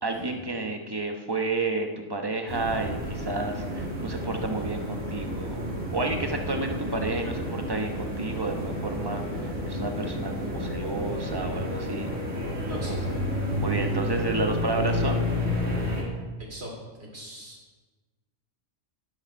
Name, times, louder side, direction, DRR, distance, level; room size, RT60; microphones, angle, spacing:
voice 1, 0.0-5.6 5.9-12.1 12.7-13.0 13.6-15.2, right 2 dB, 20° right, 4 dB, 1.0 m, -31 dB
sound 1, 2.5-16.0, equal, 75° right, 2.7 m, -30 dB
voice 2, 12.7-13.2 16.5-16.7 17.0-17.6, right 1 dB, 55° right, -1 dB, 3.1 m, -39 dB
11.5 x 11.0 x 4.5 m, 1.3 s
omnidirectional pair, 1.3 m